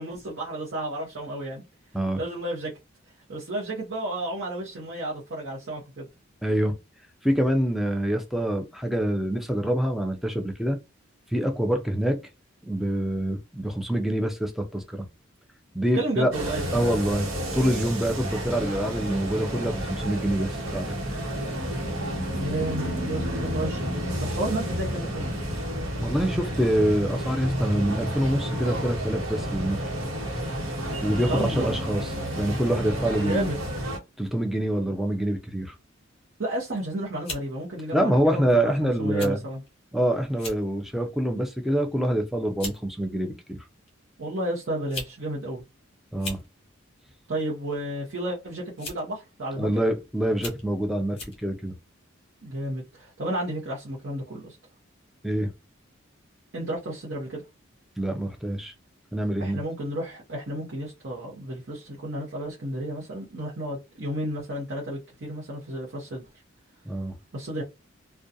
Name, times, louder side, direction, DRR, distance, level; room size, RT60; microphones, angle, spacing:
voice 1, 0.0-1.6 2.2-2.7 3.3-6.1 15.9-16.7 22.3-25.4 31.3-31.7 33.2-33.6 36.4-39.6 44.2-45.6 47.3-49.7 52.4-54.6 56.5-57.4 59.4-66.2 67.3-67.6, right 1 dB, 60° right, 0.7 m, -32 dB
voice 2, 6.4-6.8 7.2-10.8 11.3-12.2 12.7-15.1 15.7-16.3 16.7-17.3 17.5-21.0 26.0-29.8 31.0-32.1 32.4-33.5 34.2-35.7 37.9-39.4 39.9-43.6 46.1-46.4 49.6-51.7 55.2-55.5 58.0-58.7 59.1-59.6 66.9-67.1, right 1 dB, ahead, 0.4 m, -26 dB
sound 1, 16.3-34.0, equal, 90° right, 1.0 m, -30 dB
sound 2, 36.6-36.8 37.2-37.5 38.3-38.5 39.2-39.3 39.7-39.8 40.3-40.6 41.1-41.4 42.2-42.3 42.6-42.8 43.9-44.0 44.7-45.2 45.4-45.5 46.1-46.5 47.7-48.0 48.8-49.1 49.7-49.8 50.3-50.7 51.2-51.4, left 2 dB, 30° left, 0.9 m, -37 dB
2.4 x 2.2 x 2.6 m
head